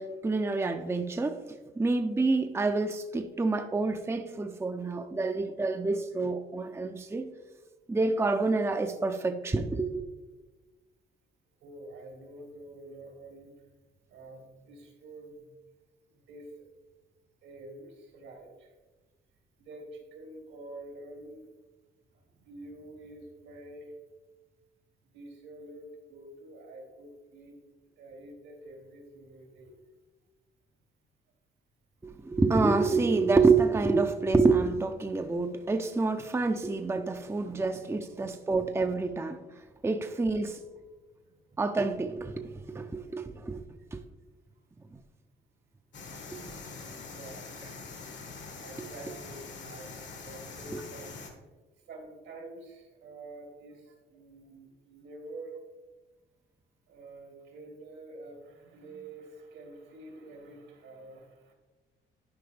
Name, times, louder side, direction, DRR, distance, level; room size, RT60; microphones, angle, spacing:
voice 1, 0.0-1.4 1.8-7.3 7.9-10.0 32.0-39.4 39.8-40.6 41.6-43.6 43.9-44.0 46.3-46.4 50.7-50.8, right 3 dB, 15° right, 0.5 m, -27 dB
voice 2, 11.6-13.5 14.1-15.5 16.1-16.6 17.4-18.7 19.6-21.5 22.1-23.9 25.1-27.5 28.0-29.8 37.5-37.6 38.0-38.1 39.6-39.7 42.5-42.7 43.8-43.9 44.5-44.6 46.1-46.4 46.7-47.5 48.6-51.2 51.9-55.6 56.9-61.5, right 2 dB, 85° right, 2.6 m, -48 dB
sound 1, 45.9-51.3, left 4 dB, 70° left, 1.6 m, -44 dB
11.5 x 5.1 x 3.4 m
cardioid pair, 90°, 20 cm